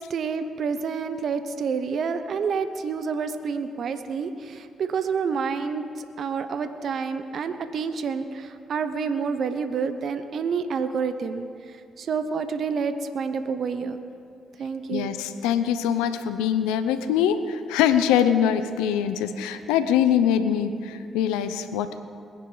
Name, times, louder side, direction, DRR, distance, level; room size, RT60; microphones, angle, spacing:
voice 1, 0.0-14.0 14.6-15.1, right 5 dB, 65° right, 10 dB, 0.8 m, -28 dB
voice 2, 14.9-22.0, left 9 dB, 90° left, 11 dB, 0.7 m, -23 dB
21.0 x 9.9 x 4.0 m, 2.4 s
supercardioid pair, 50°, 0 cm